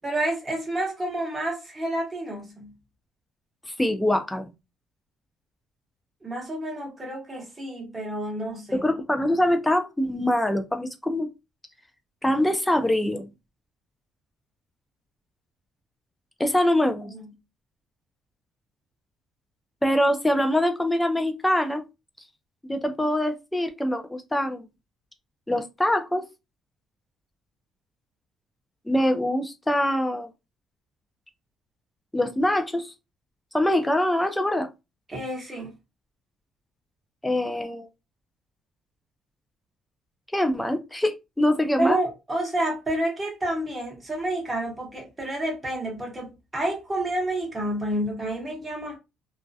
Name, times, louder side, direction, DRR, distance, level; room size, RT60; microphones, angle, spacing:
voice 1, 0.0-2.7 6.2-8.8 17.1-17.2 35.1-35.7 41.8-49.0, right 1 dB, 15° right, 0.9 m, -29 dB
voice 2, 3.8-4.5 8.7-11.3 12.2-13.3 16.4-17.1 19.8-21.8 22.6-24.7 25.5-26.2 28.9-30.3 32.1-32.9 33.5-34.7 37.2-37.9 40.3-42.0, left 1 dB, 5° left, 0.3 m, -24 dB
2.3 x 2.1 x 2.6 m
cardioid pair, 145°, 0 cm